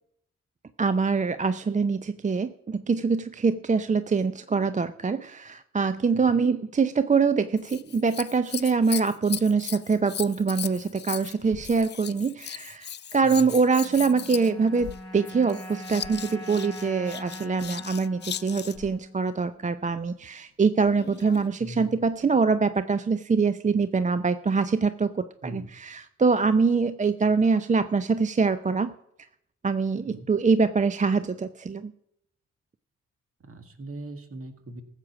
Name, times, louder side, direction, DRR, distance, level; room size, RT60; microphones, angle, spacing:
voice 1, 0.8-28.9 29.6-31.9, right 5 dB, 25° right, 12 dB, 0.5 m, -24 dB
Scissors, 7.6-18.9 20.9-21.5 22.2-22.3, left 9 dB, 40° left, 0.4 m, -38 dB
sound 1, 13.8-20.2, equal, ahead, 4.0 m, -42 dB
voice 2, 21.6-22.0 25.4-25.7 30.1-30.3 33.4-34.8, right 1 dB, 50° right, 7 dB, 1.9 m, -40 dB
14.5 x 7.5 x 6.0 m, 0.77 s
supercardioid pair, 50°, 29 cm